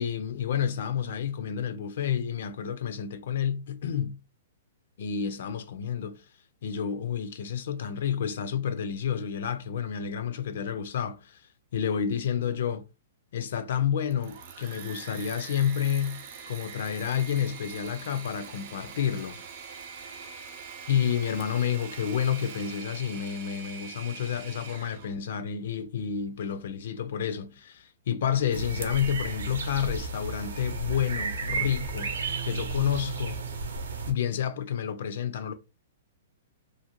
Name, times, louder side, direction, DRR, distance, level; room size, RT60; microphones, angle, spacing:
voice 1, 0.0-4.2 5.0-6.2 6.6-11.4 11.7-12.9 13.3-16.2 16.5-19.4 20.9-32.1 32.4-33.4 34.1-35.5, left 8 dB, 60° left, 0.3 m, -30 dB
Engine / Mechanisms, 13.9-25.1, right 6 dB, 45° right, 0.6 m, -43 dB
sound 1, 28.5-34.1, right 4 dB, 85° right, 0.7 m, -33 dB
2.5 x 2.4 x 2.8 m
hypercardioid pair, 160°, 0 cm